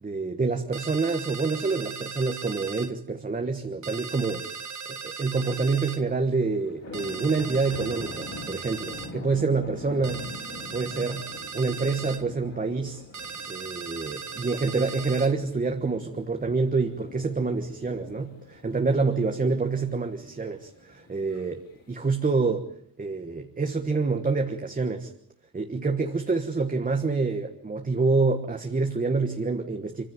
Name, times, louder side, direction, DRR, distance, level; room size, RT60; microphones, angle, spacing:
voice 1, 0.0-4.5 4.9-10.2 10.7-11.3 11.5-13.0 13.5-21.6 21.9-22.6 23.0-25.1 25.5-30.0, right 4 dB, 25° right, 4 dB, 1.4 m, -27 dB
sound 1, 0.7-2.9 3.8-6.0 6.9-9.1 10.0-12.2 13.1-15.3, right 5 dB, 55° right, 1.5 m, -38 dB
sound 2, 5.9-22.2, left 2 dB, 40° left, 4.6 m, -44 dB
26.0 x 15.5 x 9.4 m, 0.66 s
wide cardioid pair, 175°, 36 cm